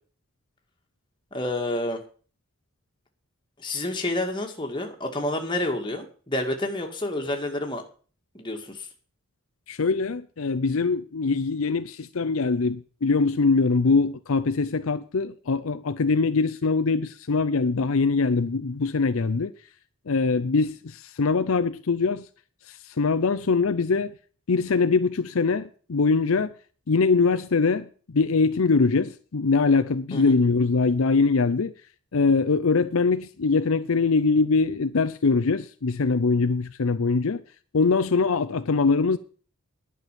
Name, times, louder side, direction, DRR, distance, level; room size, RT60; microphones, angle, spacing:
voice 1, 1.3-2.0 3.6-7.8 8.3-8.9 30.1-30.3, left 1 dB, 20° left, 2.0 m, -29 dB
voice 2, 9.7-19.5 20.1-22.3 22.7-24.1 24.5-26.5 26.9-31.7 32.1-37.4 37.7-39.2, left 4 dB, 70° left, 0.6 m, -23 dB
11.0 x 6.1 x 9.1 m
head